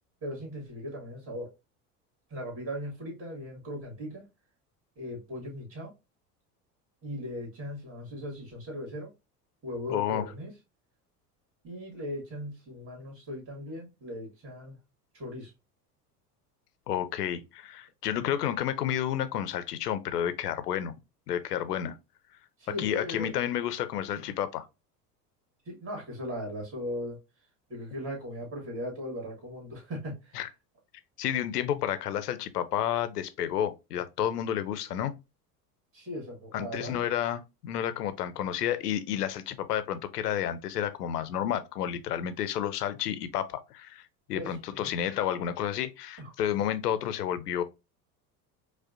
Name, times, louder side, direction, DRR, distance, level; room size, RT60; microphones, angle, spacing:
voice 1, 0.2-1.5 2.3-4.3 5.0-5.9 7.0-9.1 9.6-10.5 11.6-14.8 15.1-15.5 22.6-23.3 24.2-24.3 25.7-27.2 27.7-30.4 35.9-37.0 44.3-44.5 44.8-45.0 46.2-46.3, equal, 30° right, 1.9 m, -38 dB
voice 2, 9.9-10.2 16.9-20.9 21.3-22.0 22.8-24.6 30.4-30.5 31.2-35.1 36.5-44.0 44.3-47.6, left 10 dB, 80° left, 0.6 m, -31 dB
4.9 x 2.1 x 2.5 m
figure-of-eight pair, 75°, 47 cm